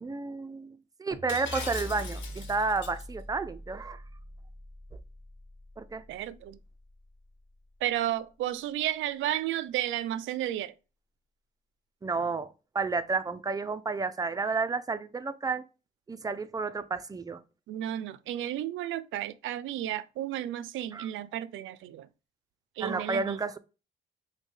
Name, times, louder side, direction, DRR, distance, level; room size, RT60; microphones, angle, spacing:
voice 1, 0.0-4.0 5.8-6.0 12.0-15.6 16.1-17.4 20.9-21.1 22.8-23.6, right 4 dB, 20° right, 0.4 m, -31 dB
sound 1, 1.1-7.4, equal, 15° left, 1.3 m, -44 dB
Shatter, 1.3-3.0, left 5 dB, 70° left, 1.1 m, -41 dB
voice 2, 6.1-6.6 7.8-10.7 17.7-22.1 22.8-23.4, right 12 dB, 80° right, 0.4 m, -32 dB
5.2 x 2.2 x 3.2 m
cardioid pair, 90°, 20 cm